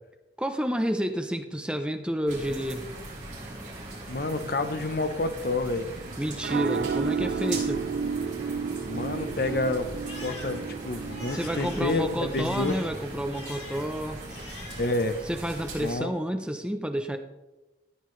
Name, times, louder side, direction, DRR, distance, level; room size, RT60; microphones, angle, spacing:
voice 1, 0.4-2.9 6.2-7.8 11.3-14.2 15.3-17.2, equal, 5° right, 6 dB, 0.6 m, -30 dB
sound 1, 2.3-15.9, right 2 dB, 45° right, 3.7 m, -40 dB
voice 2, 4.1-5.9 8.9-9.9 10.2-12.8 14.8-15.2 15.8-16.1, left 2 dB, 55° left, 9 dB, 0.8 m, -29 dB
sound 2, 5.8-12.1, right 5 dB, 60° right, 0.4 m, -32 dB
Crying sobbing, 8.6-15.1 15.4-16.1, left 2 dB, 75° left, 4.2 m, -46 dB
14.0 x 8.7 x 3.2 m, 1.0 s
head